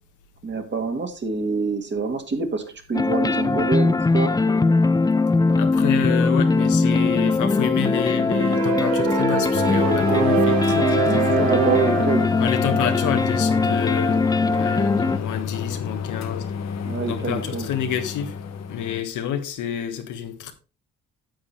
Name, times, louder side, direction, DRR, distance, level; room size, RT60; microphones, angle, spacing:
voice 1, 0.4-2.6 2.9-4.4 11.4-12.3 16.8-17.7, right 4 dB, 35° right, 1.9 m, -25 dB
sound 1, 2.9-15.2, left 3 dB, 15° left, 0.4 m, -21 dB
voice 2, 5.6-11.5 12.4-14.2 14.5-16.5 17.1-18.4 18.7-20.5, left 9 dB, 80° left, 1.4 m, -28 dB
sound 2, 8.3-12.3, right 9 dB, 80° right, 1.1 m, -25 dB
sound 3, 9.5-19.0, left 6 dB, 60° left, 1.0 m, -29 dB
9.5 x 6.8 x 3.3 m
cardioid pair, 90°, 30 cm